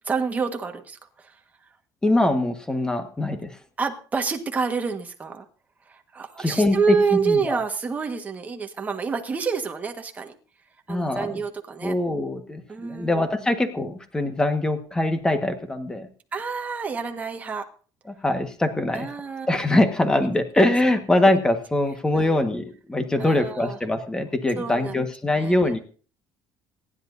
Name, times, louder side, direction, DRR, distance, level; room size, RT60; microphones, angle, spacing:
voice 1, 0.0-1.3 3.8-5.4 5.9-10.3 10.9-11.9 12.7-13.3 16.3-17.7 18.9-19.5 22.1-22.4 23.2-23.8 24.6-25.0 25.3-25.6, right 5 dB, 20° right, 4 dB, 1.5 m, -28 dB
voice 2, 2.0-3.5 6.4-7.0 7.3-7.6 10.9-11.4 11.8-16.1 18.1-19.1 19.5-25.8, left 1 dB, 10° left, 7 dB, 1.5 m, -23 dB
27.0 x 10.5 x 2.7 m, 0.39 s
cardioid pair, 160°, 8 cm